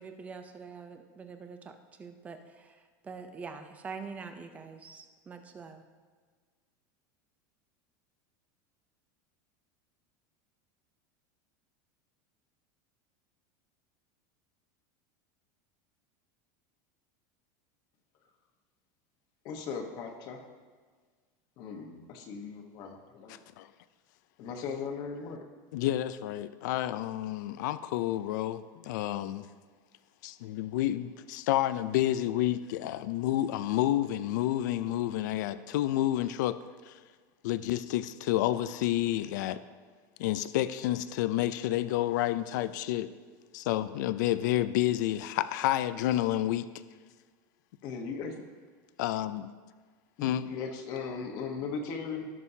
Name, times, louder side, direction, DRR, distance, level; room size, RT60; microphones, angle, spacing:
voice 1, 0.0-2.8 3.0-5.8, right 5 dB, 15° right, 0.5 m, -44 dB
voice 2, 19.4-20.4 21.6-23.4 24.4-25.4 47.8-48.4 50.2-52.3, left 5 dB, 40° left, 1.1 m, -38 dB
voice 3, 25.7-29.5 30.2-36.6 36.9-37.0 37.4-39.6 40.2-43.1 43.5-46.7 49.0-49.5 50.2-50.5, left 14 dB, 70° left, 0.4 m, -29 dB
17.0 x 6.2 x 2.7 m
supercardioid pair, 170°, 10 cm